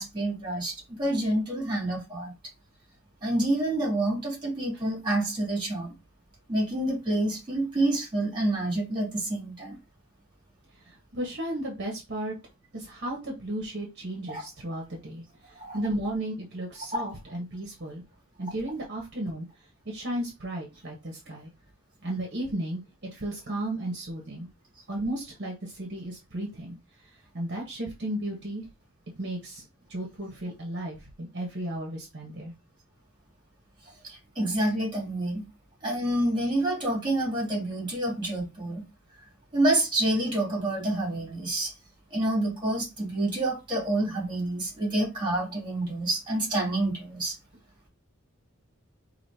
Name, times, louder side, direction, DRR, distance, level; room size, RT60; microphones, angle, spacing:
voice 1, 0.0-2.3 3.2-5.9 6.5-9.8 14.3-14.5 15.5-15.8 16.9-17.1 34.0-35.5 35.8-38.8 39.5-41.7 42.1-47.3, right 1 dB, 20° right, 2.5 m, -28 dB
voice 2, 10.9-12.3 12.7-18.0 18.4-19.5 19.8-21.5 22.0-22.8 23.1-24.5 24.9-26.8 27.3-28.6 29.2-29.6 29.9-32.5, right 1 dB, 55° right, 1.2 m, -34 dB
5.0 x 2.9 x 2.8 m
head